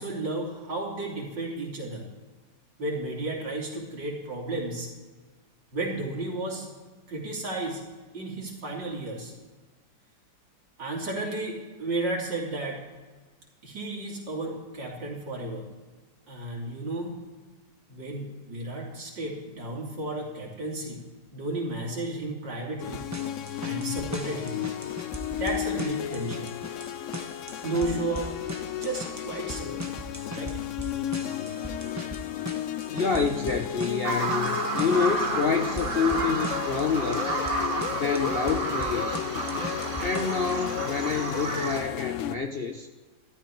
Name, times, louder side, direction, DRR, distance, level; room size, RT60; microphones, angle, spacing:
voice 1, 0.0-2.1 2.8-4.9 5.7-6.7 7.1-7.8 8.1-9.3 10.8-12.8 13.6-15.7 16.3-17.1 17.9-21.1 21.3-23.0 23.6-24.6 25.4-26.5 27.6-28.3 28.8-29.8 30.4-30.5, right 2 dB, 80° right, -2 dB, 3.8 m, -33 dB
sound 1, 22.8-42.4, left 12 dB, 85° left, 0.6 m, -34 dB
sound 2, 22.9-40.6, right 1 dB, 15° right, 0.8 m, -40 dB
voice 2, 32.9-37.3 37.9-39.3 40.0-42.9, left 5 dB, 50° left, 4 dB, 0.7 m, -28 dB
Bird vocalization bird call bird song, 34.0-41.8, right 2 dB, 30° right, 1.8 m, -31 dB
13.5 x 12.5 x 4.6 m, 1.3 s
omnidirectional pair, 2.0 m